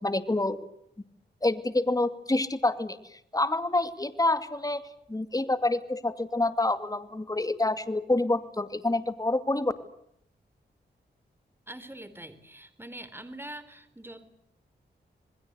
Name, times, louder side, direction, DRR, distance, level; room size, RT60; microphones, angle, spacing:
voice 1, 0.0-0.6 1.4-3.0 3.3-9.7, left 2 dB, 20° left, 10 dB, 2.4 m, -27 dB
voice 2, 11.7-14.3, right 1 dB, 10° right, 13 dB, 3.8 m, -43 dB
27.5 x 21.0 x 8.2 m, 0.72 s
cardioid pair, 65°, 18 cm